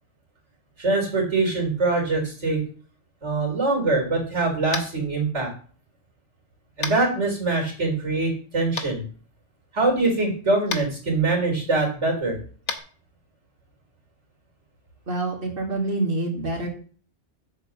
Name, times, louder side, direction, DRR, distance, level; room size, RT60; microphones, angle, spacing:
voice 1, 0.8-2.6 3.2-5.5 6.8-9.0 9.7-12.4, right 3 dB, 90° right, 1 dB, 3.6 m, -23 dB
Tap, 4.7-5.0 6.8-7.0 8.8-8.9 10.7-10.8 12.6-12.8, left 5 dB, 90° left, 1.4 m, -29 dB
voice 2, 15.1-16.7, right 2 dB, 50° right, 2 dB, 2.2 m, -26 dB
7.9 x 4.4 x 6.8 m, 0.43 s
omnidirectional pair, 1.2 m